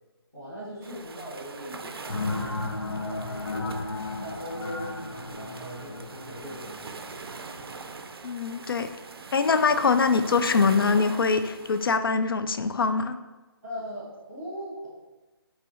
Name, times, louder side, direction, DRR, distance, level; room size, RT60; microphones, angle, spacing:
voice 1, 0.3-2.5 2.9-3.8 4.2-8.0 13.6-14.9, equal, 10° left, -13 dB, 0.6 m, -40 dB
sound 1, 0.8-12.0, right 4 dB, 65° right, 0.4 m, -42 dB
sound 2, 2.1-7.4, left 2 dB, 85° left, 0.7 m, -34 dB
voice 2, 8.2-8.9 9.3-13.2, left 4 dB, 60° left, 10 dB, 0.4 m, -23 dB
4.1 x 2.7 x 4.2 m, 1.1 s
hypercardioid pair, 175°, 13 cm